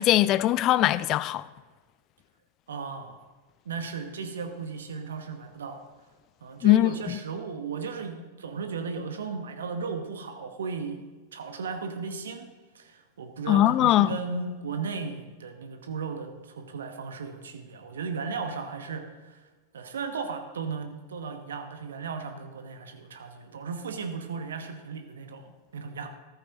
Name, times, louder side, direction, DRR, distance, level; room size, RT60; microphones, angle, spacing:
voice 1, 0.0-1.4 6.6-7.2 13.5-14.2, left 14 dB, 35° left, 0.4 m, -21 dB
voice 2, 2.7-3.2 3.6-5.8 6.4-11.0 11.3-12.5 12.7-19.4 19.7-26.1, right 5 dB, 65° right, 1.2 m, -36 dB
14.0 x 13.0 x 2.9 m
figure-of-eight pair, 90°, 0 cm